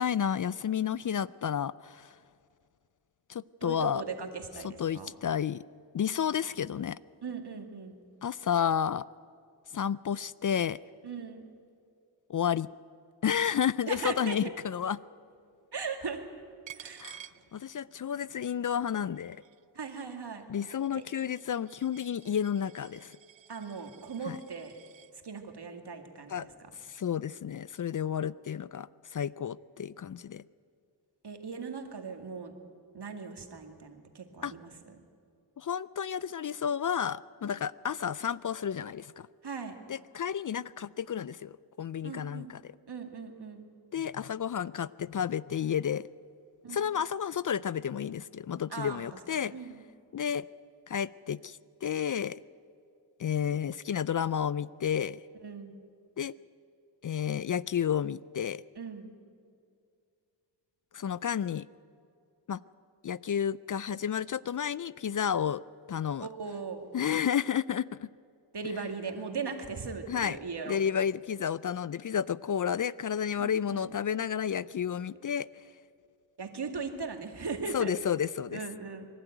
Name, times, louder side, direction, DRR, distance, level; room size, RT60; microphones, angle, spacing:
voice 1, 0.0-2.1 3.3-4.0 4.6-5.6 5.9-7.0 8.2-9.1 9.7-10.8 12.3-12.7 13.2-15.0 17.0-19.4 20.5-23.2 24.3-24.4 26.3-26.5 26.8-30.4 34.4-34.5 35.6-39.3 39.9-42.6 43.9-46.0 46.7-49.5 50.1-50.5 50.9-52.4 53.2-55.2 56.2-56.3 57.0-58.6 60.9-61.7 62.5-62.6 63.0-65.6 65.9-66.3 66.9-68.1 70.1-70.4 70.7-75.5 77.7-78.6, left 8 dB, 45° left, 20 dB, 0.4 m, -31 dB
voice 2, 3.6-5.1 7.2-8.0 11.0-11.5 13.9-14.4 15.7-16.3 16.7-17.1 19.7-20.4 20.9-21.0 23.5-24.8 25.1-26.5 31.2-32.5 32.9-35.0 39.4-39.7 42.0-42.5 42.9-43.7 46.6-46.8 48.7-49.8 55.4-55.8 58.8-59.1 66.2-66.9 68.5-70.8 73.4-73.9 76.4-77.9 78.5-79.1, right 5 dB, 65° right, 5 dB, 2.3 m, -39 dB
Coin (dropping), 16.7-18.1 18.5-25.1, right 10 dB, 85° right, 0.7 m, -53 dB
24.5 x 12.0 x 9.1 m, 2.4 s
cardioid pair, 50°, 44 cm